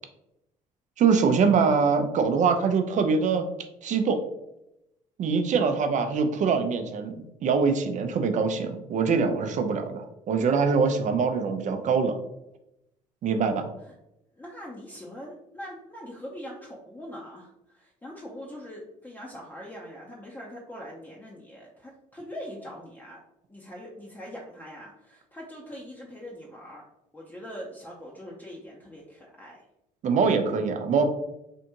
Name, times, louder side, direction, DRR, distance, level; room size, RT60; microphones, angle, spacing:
voice 1, 1.0-3.5 3.8-4.2 5.2-7.1 7.4-12.2 13.2-13.7 30.0-31.1, right 5 dB, 50° right, 7 dB, 0.6 m, -23 dB
voice 2, 14.4-23.2 23.5-26.8 27.1-29.6, equal, 10° left, -4 dB, 0.7 m, -42 dB
3.4 x 2.5 x 2.9 m, 0.86 s
hypercardioid pair, 65°, 16 cm